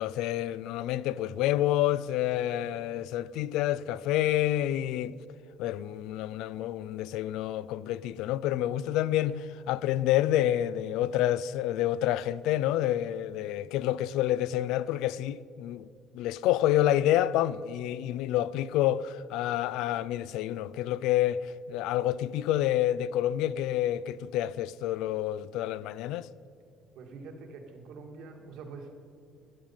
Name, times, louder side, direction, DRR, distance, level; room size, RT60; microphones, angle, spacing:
voice 1, 0.0-5.2 5.6-15.9 16.1-26.3, left 13 dB, 90° left, 0.3 m, -28 dB
voice 2, 26.9-29.0, right 4 dB, 60° right, 1.7 m, -45 dB
13.0 x 9.0 x 5.6 m
cardioid pair, 180°, 0 cm